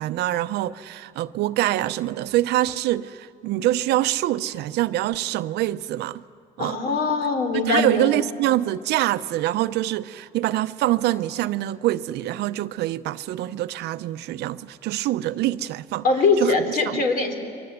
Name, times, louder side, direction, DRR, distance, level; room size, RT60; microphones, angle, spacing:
voice 1, 0.0-6.2 6.6-6.8 7.6-16.0 16.4-16.6 16.9-17.0, right 14 dB, 80° right, 0.7 m, -25 dB
voice 2, 6.6-8.1 16.0-17.3, left 3 dB, 60° left, 3.7 m, -22 dB
30.0 x 23.5 x 8.2 m
cardioid pair, 110°, 17 cm